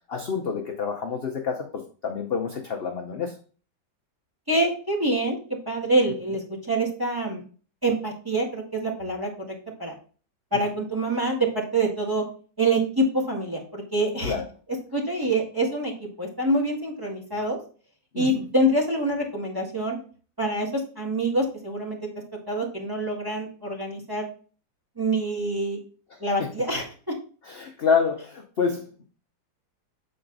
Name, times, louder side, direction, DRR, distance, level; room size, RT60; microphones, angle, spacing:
voice 1, 0.1-3.4 10.5-10.6 14.2-14.4 18.1-18.4 26.4-26.5 27.5-29.0, left 6 dB, 50° left, 2 dB, 0.7 m, -28 dB
voice 2, 4.5-5.4 5.7-7.4 7.8-9.5 9.8-9.9 10.5-12.2 12.6-14.3 14.9-17.6 18.1-20.0 20.4-22.0 22.5-24.3 25.0-25.8 26.2-27.1, right 1 dB, 10° right, -3 dB, 1.7 m, -26 dB
7.9 x 4.4 x 3.9 m, 0.40 s
omnidirectional pair, 2.0 m